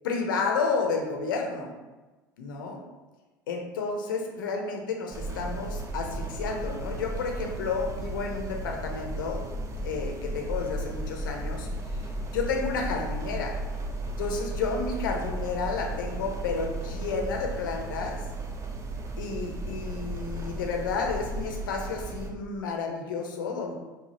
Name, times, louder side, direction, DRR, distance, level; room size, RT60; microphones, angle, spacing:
voice 1, 0.0-1.7 2.4-2.8 3.5-9.4 9.8-12.0 12.3-13.5 14.2-18.2 19.2-23.8, left 4 dB, 75° left, 2 dB, 0.6 m, -31 dB
sound 1, 5.1-22.3, right 1 dB, 25° right, 0.6 m, -35 dB
4.8 x 2.3 x 2.8 m, 1.2 s
figure-of-eight pair, 70°, 11 cm